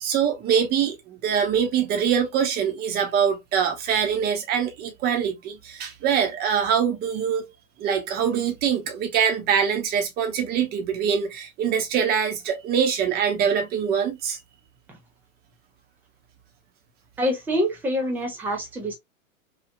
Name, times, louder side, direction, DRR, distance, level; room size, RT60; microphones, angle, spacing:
voice 1, 0.0-7.4 7.8-14.4, right 7 dB, 20° right, 0.8 m, -24 dB
voice 2, 17.2-19.0, equal, 5° right, 0.4 m, -26 dB
3.2 x 2.3 x 2.5 m
figure-of-eight pair, 105°, 42 cm